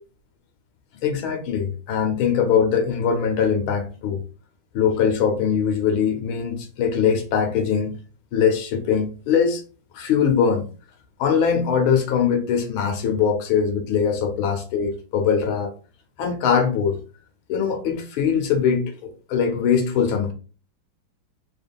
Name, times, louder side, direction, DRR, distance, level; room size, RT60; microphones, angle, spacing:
voice 1, 1.0-4.2 4.7-8.0 8.3-9.6 9.9-10.6 11.2-15.7 16.2-17.0 17.5-20.3, left 7 dB, 85° left, 1.6 m, -21 dB
4.1 x 2.4 x 3.4 m
omnidirectional pair, 2.2 m